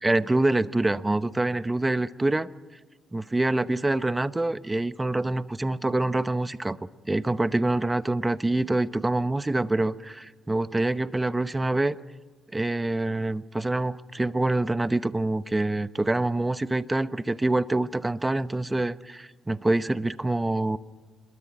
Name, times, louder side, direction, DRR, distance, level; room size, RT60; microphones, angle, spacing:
voice 1, 0.0-2.5 3.1-12.0 12.5-20.8, right 2 dB, 15° right, 13 dB, 0.9 m, -26 dB
27.5 x 22.0 x 6.1 m, 1.3 s
cardioid pair, 90°, 0 cm